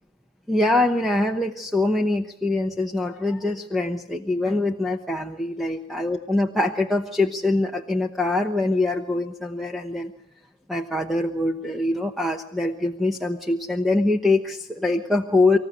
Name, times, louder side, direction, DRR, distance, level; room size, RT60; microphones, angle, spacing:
voice 1, 0.5-10.1 10.7-15.6, left 2 dB, ahead, 5 dB, 0.9 m, -23 dB
25.5 x 15.0 x 9.3 m, 0.73 s
head